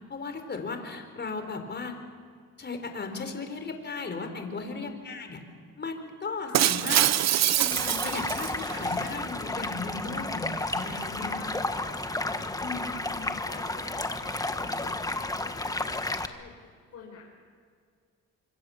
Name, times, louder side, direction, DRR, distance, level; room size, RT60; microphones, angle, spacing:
voice 1, 0.1-2.0 2.6-5.4 5.8-7.0 7.6-11.4 12.6-13.3, left 4 dB, 35° left, 6 dB, 4.4 m, -36 dB
voice 2, 4.4-4.8 6.4-6.7 11.2-13.0 13.4-17.3, left 5 dB, 60° left, -2 dB, 5.5 m, -49 dB
Shatter, 6.5-8.9, right 11 dB, 60° right, 0.8 m, -25 dB
Stream, 7.7-16.3, left 2 dB, 10° left, 1.6 m, -32 dB
26.0 x 24.5 x 7.3 m, 2.1 s
cardioid pair, 90°, 30 cm